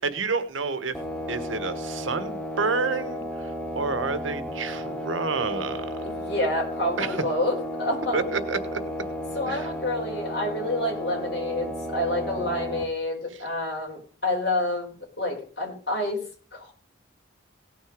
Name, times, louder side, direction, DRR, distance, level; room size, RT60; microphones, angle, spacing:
voice 1, 0.0-0.9 1.3-5.9 7.0-7.2 8.1-8.8 9.5-9.7, right 4 dB, 90° right, 12 dB, 1.3 m, -29 dB
sound 1, 0.9-12.8, equal, 5° left, 1.2 m, -33 dB
voice 2, 6.0-8.3 9.3-16.2 16.5-16.7, left 1 dB, 55° left, -1 dB, 5.1 m, -28 dB
17.5 x 6.4 x 5.2 m, 0.40 s
head